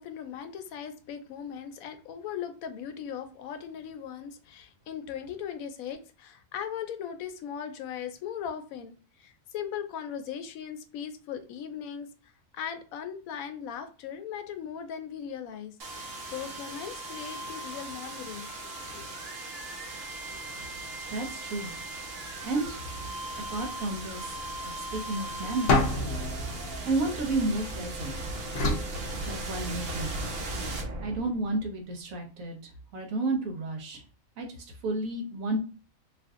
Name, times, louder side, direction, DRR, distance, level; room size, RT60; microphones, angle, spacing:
voice 1, 0.0-18.5 18.8-19.1, left 8 dB, 85° left, 8 dB, 1.0 m, -39 dB
sound 1, 15.8-31.6, right 1 dB, 50° right, 0.9 m, -38 dB
voice 2, 21.1-21.7 22.4-23.0 23.5-26.0 26.8-28.1 29.3-30.3 31.0-32.6 32.9-34.0 34.4-35.6, right 2 dB, 75° right, 3 dB, 1.3 m, -32 dB
sound 2, 25.7-27.9 28.5-29.9, left 2 dB, 60° left, 0.7 m, -29 dB
2.7 x 2.6 x 3.6 m, 0.35 s
omnidirectional pair, 1.4 m